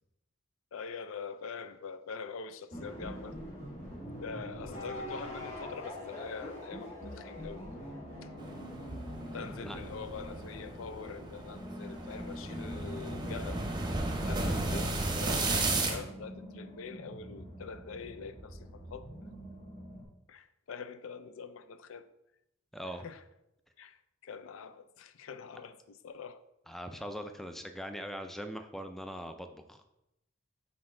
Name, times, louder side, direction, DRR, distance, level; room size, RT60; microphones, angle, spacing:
voice 1, 0.7-3.4 4.2-7.7 8.2-8.3 9.3-13.6 14.3-19.1 20.3-22.1 23.0-23.2 23.8-26.4, left 5 dB, 80° left, 0.4 m, -44 dB
sound 1, 2.7-20.0, equal, 35° left, 1.8 m, -44 dB
sound 2, 8.4-16.0, right 2 dB, 20° right, 0.8 m, -34 dB
voice 2, 22.7-23.1 26.7-29.8, equal, ahead, 0.3 m, -41 dB
6.2 x 4.7 x 3.7 m
head